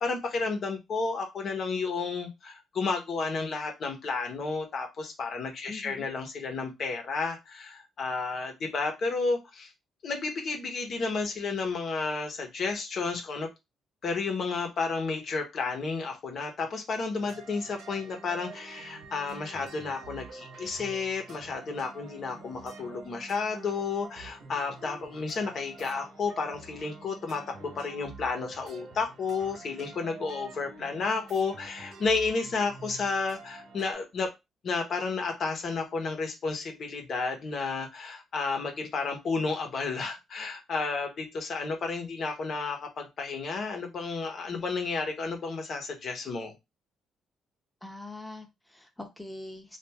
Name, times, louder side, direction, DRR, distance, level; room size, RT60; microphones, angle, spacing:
voice 1, 0.0-9.7 10.0-13.5 14.0-34.3 34.6-46.5, left 4 dB, 55° left, 1.0 m, -32 dB
voice 2, 5.7-6.1 47.8-49.8, left 2 dB, 5° left, 0.9 m, -43 dB
sound 1, 17.1-33.9, right 4 dB, 75° right, 1.1 m, -47 dB
3.0 x 2.5 x 3.5 m
cardioid pair, 90°, 0 cm